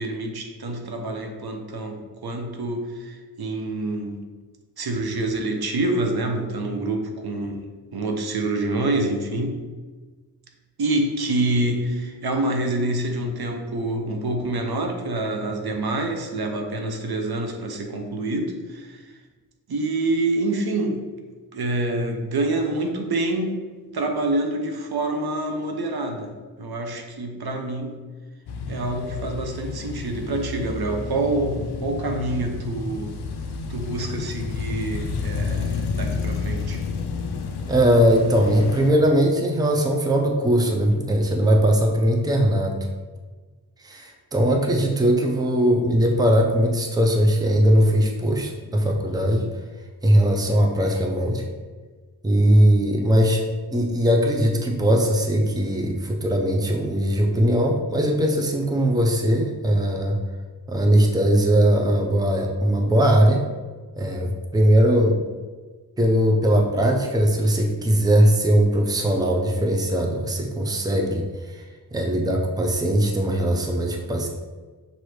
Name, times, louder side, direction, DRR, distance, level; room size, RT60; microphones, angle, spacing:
voice 1, 0.0-4.2 4.8-9.7 10.8-19.2 19.7-21.1 21.5-23.5 23.9-26.3 26.6-28.0 28.7-33.2 33.7-36.8, right 2 dB, 70° right, 3 dB, 0.7 m, -27 dB
sound 1, 28.5-38.9, left 4 dB, 80° left, 0.5 m, -30 dB
voice 2, 37.7-42.8 43.8-49.5 50.0-51.4 52.2-53.4 53.7-60.2 60.7-63.4 64.0-65.2 66.0-71.6 71.9-74.3, equal, 10° right, 1 dB, 0.5 m, -20 dB
5.9 x 2.7 x 3.2 m, 1.4 s
wide cardioid pair, 70°, 39 cm